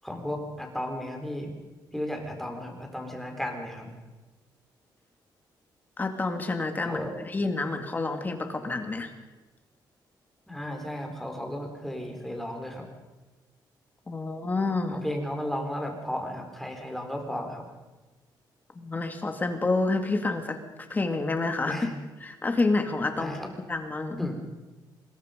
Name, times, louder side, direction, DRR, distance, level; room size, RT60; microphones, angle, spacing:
voice 1, 0.0-1.5 1.9-3.9 6.8-7.1 10.5-12.8 14.8-17.6 21.6-22.0 23.1-23.5 24.2-24.4, left 1 dB, 5° left, 2 dB, 4.4 m, -34 dB
voice 2, 6.0-9.1 14.1-15.0 18.8-20.6 20.9-21.8 22.2-23.3 23.7-24.2, left 3 dB, 20° left, 5 dB, 2.4 m, -28 dB
25.5 x 21.5 x 5.3 m, 1.2 s
cardioid pair, 130°, 8 cm